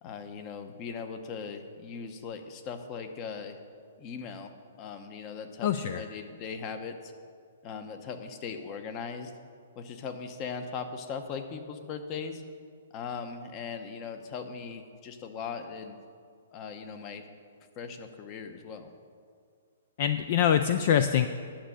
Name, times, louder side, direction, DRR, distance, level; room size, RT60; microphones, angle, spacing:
voice 1, 0.0-3.6 4.0-4.5 4.8-7.1 7.6-9.3 9.8-12.4 12.9-16.0 16.5-17.2 17.8-18.9, left 5 dB, 25° left, 7 dB, 0.9 m, -39 dB
voice 2, 5.6-6.0 20.0-21.3, left 9 dB, 45° left, 10 dB, 0.4 m, -24 dB
10.0 x 6.2 x 8.3 m, 2.2 s
hypercardioid pair, 160°, 0 cm